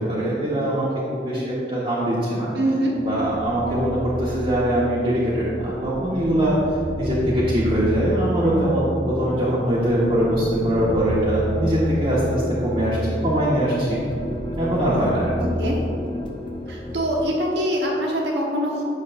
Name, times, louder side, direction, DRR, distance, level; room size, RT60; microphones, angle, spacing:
voice 1, 0.0-2.5 3.0-14.0 14.6-15.3, right 1 dB, 30° right, -9 dB, 1.2 m, -22 dB
voice 2, 2.5-2.9 15.4-15.8 16.7-18.8, equal, 75° right, -2 dB, 1.1 m, -24 dB
sound 1, 2.9-17.0, equal, 25° left, 0.6 m, -30 dB
8.9 x 7.0 x 2.6 m, 2.7 s
head